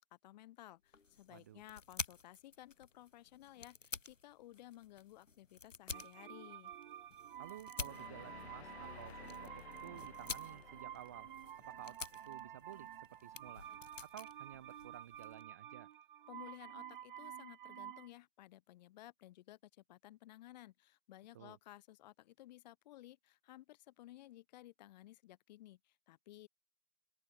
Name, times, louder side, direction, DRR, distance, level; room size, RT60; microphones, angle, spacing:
voice 1, 0.0-6.7 16.3-26.5, left 15 dB, 35° left, 5.6 m, -57 dB
sound 1, 0.9-15.4, left 4 dB, 90° left, 2.1 m, -50 dB
voice 2, 1.3-1.6 7.4-11.3 11.6-13.7 14.0-15.9 21.3-21.6, right 12 dB, 15° right, 0.5 m, -54 dB
sound 2, 5.9-18.1, right 10 dB, 45° right, 2.1 m, -51 dB
sound 3, 7.8-12.9, left 7 dB, 60° left, 1.8 m, -56 dB
open air
figure-of-eight pair, 140°, 37 cm